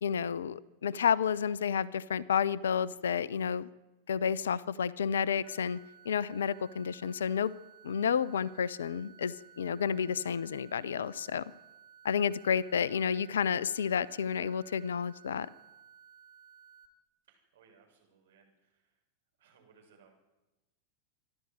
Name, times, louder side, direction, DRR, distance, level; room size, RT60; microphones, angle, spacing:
voice 1, 0.0-3.7 4.1-7.5 7.8-11.5 12.0-15.5, left 7 dB, 65° left, 22 dB, 0.7 m, -31 dB
sound 1, 5.4-16.9, right 8 dB, 40° right, 2.9 m, -57 dB
voice 2, 17.3-19.0 19.4-20.2, right 5 dB, 60° right, 1 dB, 7.2 m, -64 dB
26.5 x 12.0 x 9.6 m, 1.0 s
figure-of-eight pair, 90°, 0 cm